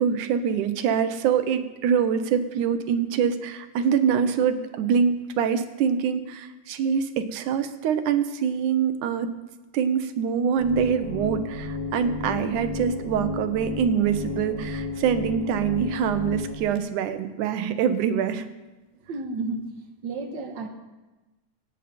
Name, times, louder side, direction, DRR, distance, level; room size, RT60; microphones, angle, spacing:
voice 1, 0.0-9.3 9.7-18.4, right 7 dB, 85° right, 9 dB, 2.4 m, -24 dB
sound 1, 10.6-16.6, left 3 dB, 75° left, 4.7 m, -33 dB
voice 2, 18.9-19.7 20.0-20.7, right 3 dB, 50° right, 4 dB, 1.6 m, -32 dB
24.5 x 9.1 x 4.3 m, 1.1 s
omnidirectional pair, 3.4 m